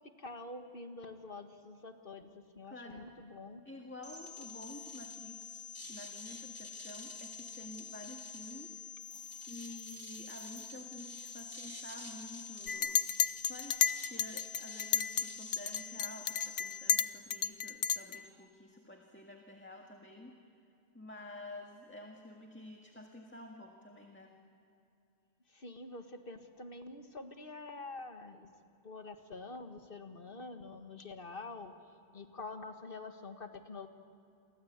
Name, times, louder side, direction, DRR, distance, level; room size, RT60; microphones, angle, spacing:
voice 1, 0.2-3.6 25.5-28.5 28.8-31.7 32.1-33.9, left 3 dB, 50° left, 6 dB, 1.8 m, -46 dB
voice 2, 2.6-3.1 3.7-8.9 9.5-13.0 13.5-20.4 20.9-24.4, left 1 dB, 10° left, 1 dB, 1.8 m, -50 dB
sound 1, 4.0-16.9, left 5 dB, 35° right, 3.8 m, -47 dB
sound 2, 9.0-11.8 12.7-13.2, right 2 dB, 75° right, 5.0 m, -62 dB
Chink clink, 12.7-15.3 15.5-18.2, left 8 dB, 85° left, 1.1 m, -32 dB
29.0 x 23.5 x 8.2 m, 2.6 s
omnidirectional pair, 1.2 m